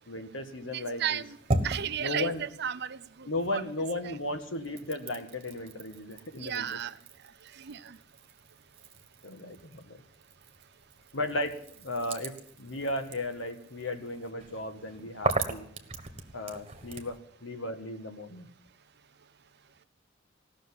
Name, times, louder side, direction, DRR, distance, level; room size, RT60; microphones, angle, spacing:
voice 1, 0.1-1.2 2.0-2.4 3.2-6.7 9.2-10.0 11.1-15.7 16.3-18.5, left 1 dB, 70° left, 7 dB, 1.6 m, -35 dB
voice 2, 0.7-1.4 1.6-3.6 4.0-4.2 6.4-7.0 7.5-8.0, right 9 dB, 55° right, 14 dB, 0.6 m, -34 dB
sound 1, 0.9-3.6 3.9-17.2, right 2 dB, 30° right, 1.4 m, -39 dB
16.5 x 6.5 x 9.7 m, 0.67 s
head